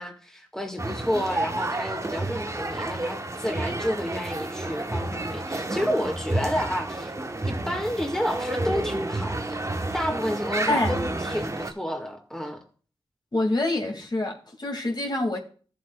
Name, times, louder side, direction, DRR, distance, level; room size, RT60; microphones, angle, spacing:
voice 1, 0.0-9.6 9.9-12.6, equal, 5° left, 1.6 m, -30 dB
sound 1, 0.8-11.7, right 2 dB, 35° right, 1.0 m, -30 dB
voice 2, 10.7-11.0 13.3-15.4, left 2 dB, 50° left, 2.0 m, -26 dB
14.0 x 7.7 x 2.2 m
cardioid pair, 45°, 9 cm